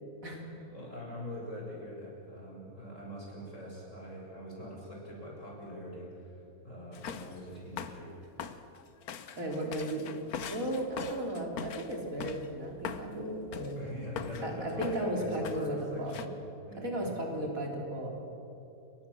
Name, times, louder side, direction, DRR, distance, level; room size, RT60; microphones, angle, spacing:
voice 1, 0.6-6.4 6.6-8.1 13.8-16.3 16.6-16.9, left 1 dB, 55° left, -3 dB, 7.7 m, -42 dB
sound 1, 6.9-7.4 7.8-8.0 8.4-12.5 12.8-13.1 13.5-13.8 14.2-14.5 14.8-15.1 15.4-15.7 16.1-16.3, left 7 dB, 80° left, 1.5 m, -41 dB
voice 2, 9.4-10.1 10.5-13.8 14.4-16.2 16.8-18.1, right 1 dB, 65° right, 0 dB, 4.1 m, -35 dB
28.5 x 23.5 x 7.2 m, 2.9 s
omnidirectional pair, 1.5 m